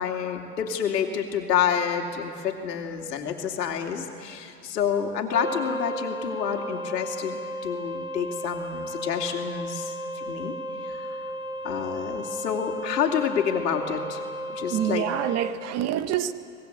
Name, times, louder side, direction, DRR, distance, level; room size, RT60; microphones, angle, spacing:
voice 1, 0.0-10.6 10.8-11.2 11.6-14.2 14.5-15.1, left 8 dB, 80° left, 3 dB, 2.9 m, -28 dB
sound 1, 5.3-15.5, equal, 10° right, 2.0 m, -34 dB
voice 2, 14.7-16.3, right 11 dB, 30° right, 12 dB, 1.0 m, -26 dB
25.0 x 20.0 x 8.2 m, 2.4 s
hypercardioid pair, 110°, 49 cm